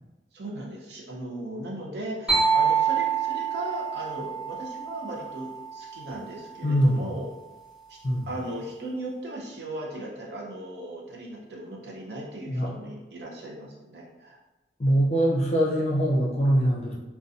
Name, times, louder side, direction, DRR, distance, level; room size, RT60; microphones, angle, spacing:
voice 1, 0.3-7.3 8.3-14.4, right 1 dB, 70° right, -3 dB, 0.6 m, -37 dB
sound 1, 2.3-6.0, right 6 dB, 5° right, 0.8 m, -26 dB
voice 2, 6.6-7.1 8.0-8.3 12.5-12.7 14.8-17.0, equal, 35° left, -4 dB, 0.5 m, -23 dB
2.6 x 2.2 x 2.4 m, 1.1 s
head